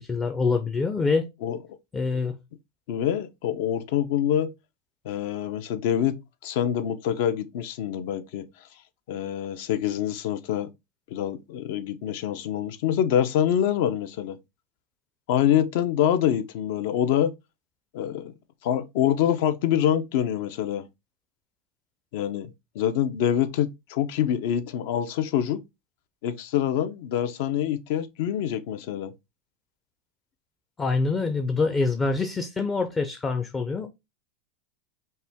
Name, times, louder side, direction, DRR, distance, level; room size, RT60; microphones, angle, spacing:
voice 1, 0.0-1.3 1.9-2.4 30.8-33.9, left 4 dB, 15° left, 0.5 m, -25 dB
voice 2, 2.9-4.5 5.0-6.2 6.4-8.5 9.1-10.7 11.1-14.4 15.3-17.3 17.9-18.3 18.6-20.8 22.1-25.6 26.2-29.1, left 10 dB, 65° left, 0.6 m, -25 dB
5.4 x 2.3 x 3.5 m
supercardioid pair, 140°, 0 cm